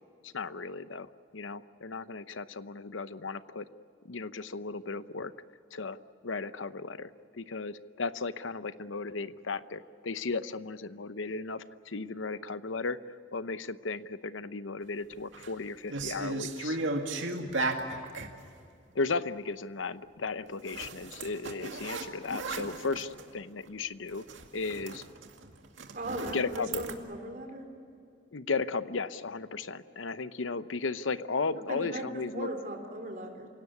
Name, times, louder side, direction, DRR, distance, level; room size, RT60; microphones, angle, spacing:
voice 1, 0.2-3.7 4.0-5.3 5.7-6.0 6.2-13.0 13.3-16.8 18.9-24.2 24.5-25.1 26.3-26.8 28.3-32.5, left 4 dB, 90° left, 13 dB, 0.9 m, -35 dB
sound 1, 15.1-15.5 15.9-18.3 20.7-23.3 23.7-23.8 24.1-26.9, right 2 dB, 85° right, 2.2 m, -36 dB
voice 2, 25.9-27.6 31.6-32.1 32.3-33.5, right 1 dB, 45° right, 3 dB, 4.0 m, -38 dB
28.0 x 17.5 x 9.6 m, 2.5 s
head